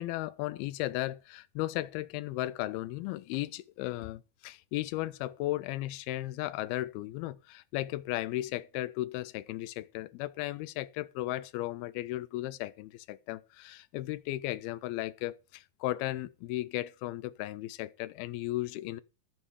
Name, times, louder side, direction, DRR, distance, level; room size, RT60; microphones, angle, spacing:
voice 1, 0.0-19.0, left 16 dB, 90° left, 2.6 m, -35 dB
14.0 x 6.5 x 4.9 m
omnidirectional pair, 4.3 m